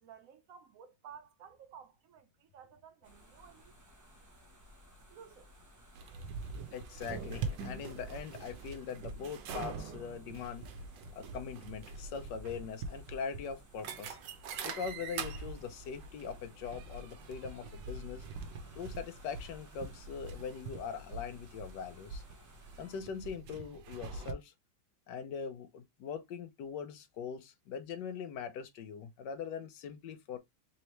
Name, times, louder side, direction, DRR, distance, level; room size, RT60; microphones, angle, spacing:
voice 1, 0.0-3.8 5.1-5.5, right 7 dB, 70° right, 0.8 m, -54 dB
sound 1, 3.0-23.0, left 1 dB, 15° right, 0.6 m, -59 dB
sound 2, 6.0-24.3, right 4 dB, 85° right, 1.4 m, -44 dB
voice 2, 6.7-10.7 11.1-14.2 14.6-18.2 18.8-22.2 22.8-24.5 25.1-30.4, left 6 dB, 80° left, 1.4 m, -42 dB
4.1 x 2.9 x 3.1 m
omnidirectional pair, 1.9 m